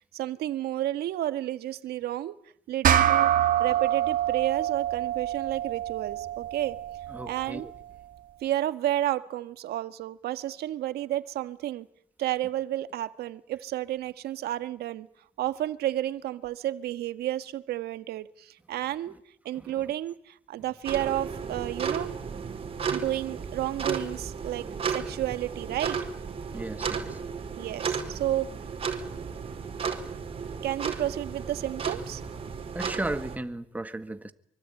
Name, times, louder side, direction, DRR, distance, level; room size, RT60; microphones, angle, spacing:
voice 1, 0.0-2.3 2.7-3.3 3.6-6.8 7.3-7.7 8.4-11.9 12.2-15.1 15.4-19.1 19.4-22.1 22.9-26.0 27.6-28.5 30.6-32.2, right 13 dB, 70° right, 1.7 m, -31 dB
sound 1, 2.8-7.6, right 11 dB, 55° right, 2.2 m, -26 dB
voice 2, 7.1-7.7 19.6-19.7 26.5-27.2 32.7-34.3, right 2 dB, 10° right, 1.9 m, -35 dB
sound 2, 20.8-33.4, right 6 dB, 35° right, 4.9 m, -34 dB
25.0 x 24.0 x 9.0 m
cardioid pair, 110°, 17 cm